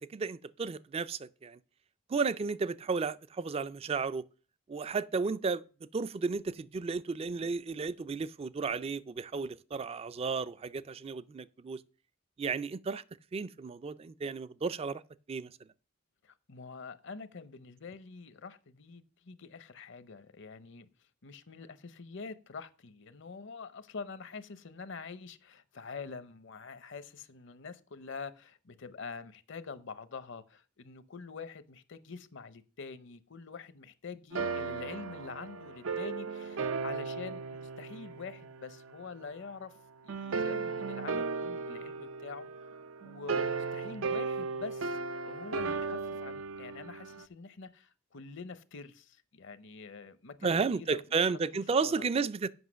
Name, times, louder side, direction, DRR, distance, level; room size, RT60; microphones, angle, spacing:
voice 1, 0.0-1.6 2.1-4.2 4.7-5.6 5.9-11.8 12.4-13.0 13.3-15.0 15.3-15.5 50.4-52.5, right 4 dB, 30° right, 0.3 m, -33 dB
voice 2, 16.2-20.9 21.2-39.7 40.0-45.0 45.3-51.3 51.8-52.0, left 4 dB, 65° left, 0.7 m, -45 dB
sound 1, 34.3-38.9 40.1-47.2, right 4 dB, 85° right, 0.5 m, -36 dB
7.9 x 5.6 x 6.2 m
head